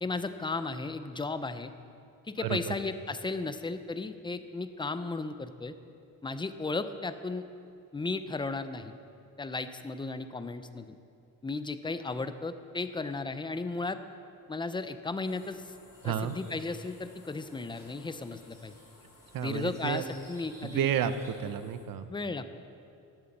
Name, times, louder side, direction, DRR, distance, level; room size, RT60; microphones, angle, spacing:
voice 1, 0.0-1.7 2.2-5.7 6.2-7.4 7.9-8.9 9.4-11.0 11.4-14.0 14.5-15.7 16.0-18.7 19.4-20.9 21.4-21.5 22.1-22.6, left 3 dB, 15° left, 11 dB, 0.5 m, -35 dB
voice 2, 2.4-2.7 16.0-16.3 19.3-20.0 20.6-22.1, right 9 dB, 75° right, 11 dB, 0.7 m, -31 dB
sound 1, 15.2-21.9, left 2 dB, 60° left, 3.5 m, -59 dB
sound 2, 15.9-21.3, equal, 10° right, 3.4 m, -57 dB
11.0 x 8.2 x 7.2 m, 2.5 s
cardioid pair, 110°, 34 cm